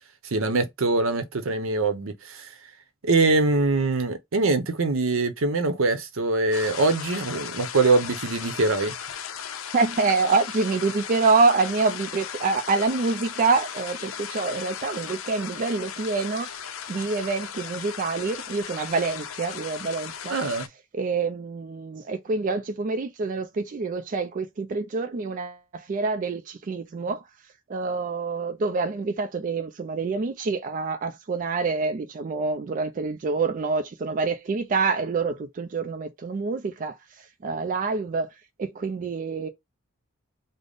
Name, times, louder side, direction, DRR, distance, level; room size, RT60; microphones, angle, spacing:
voice 1, 0.2-2.5 3.0-8.9 20.3-20.7, right 3 dB, 85° right, 0.7 m, -23 dB
sound 1, 6.5-20.7, left 8 dB, 90° left, 0.5 m, -36 dB
voice 2, 9.7-16.5 16.9-20.3 20.9-27.2 27.7-38.3 38.6-39.5, right 4 dB, 40° right, 0.4 m, -26 dB
3.4 x 2.0 x 3.8 m
head